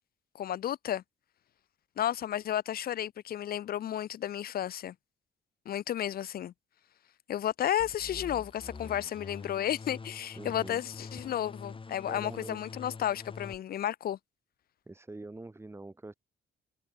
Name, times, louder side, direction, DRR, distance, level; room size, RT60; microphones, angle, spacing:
voice 1, 0.3-1.0 2.0-4.9 5.7-6.5 7.3-14.2, left 11 dB, 50° left, 0.5 m, -32 dB
sound 1, 7.8-13.6, left 4 dB, 25° left, 1.4 m, -45 dB
voice 2, 10.4-10.8 12.1-12.6 14.9-16.1, right 2 dB, 10° right, 0.9 m, -44 dB
cardioid pair, 90°, 20 cm